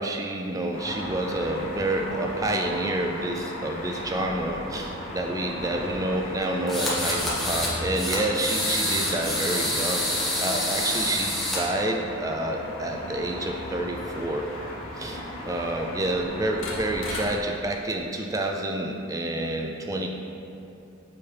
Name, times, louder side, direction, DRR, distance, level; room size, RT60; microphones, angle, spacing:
voice 1, 0.0-14.5 15.0-20.1, right 1 dB, 15° right, 2 dB, 0.3 m, -28 dB
sound 1, 0.7-17.3, left 1 dB, 85° left, 1.3 m, -36 dB
sound 2, 6.7-7.7 8.0-11.6, left 1 dB, ahead, 1.2 m, -27 dB
6.9 x 5.0 x 3.4 m, 2.7 s
head